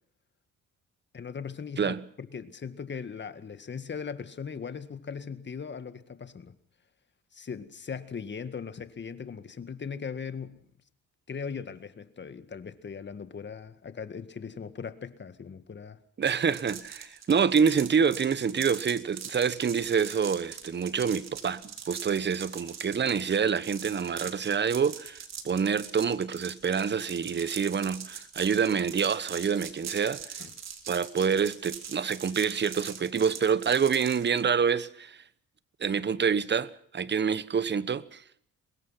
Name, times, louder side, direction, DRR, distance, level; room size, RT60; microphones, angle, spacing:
voice 1, 1.1-6.6 7.3-10.6 11.3-16.0 30.4-30.5, left 6 dB, 35° left, 1.9 m, -39 dB
voice 2, 16.2-30.4 30.9-35.2 35.8-38.2, right 6 dB, 35° right, 1.2 m, -27 dB
sound 1, 16.2-34.4, right 7 dB, 60° right, 3.7 m, -42 dB
24.0 x 20.5 x 5.8 m
cardioid pair, 90°, 30 cm